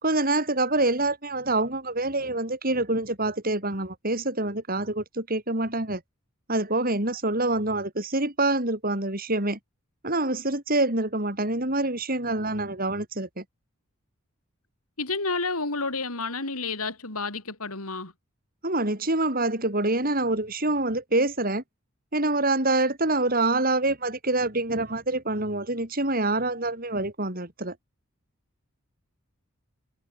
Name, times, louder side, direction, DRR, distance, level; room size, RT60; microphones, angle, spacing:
voice 1, 0.0-6.0 6.5-9.6 10.0-13.4 18.6-21.6 22.1-27.7, right 2 dB, 40° right, 6.1 m, -26 dB
voice 2, 15.0-18.1, left 3 dB, 85° left, 5.7 m, -30 dB
head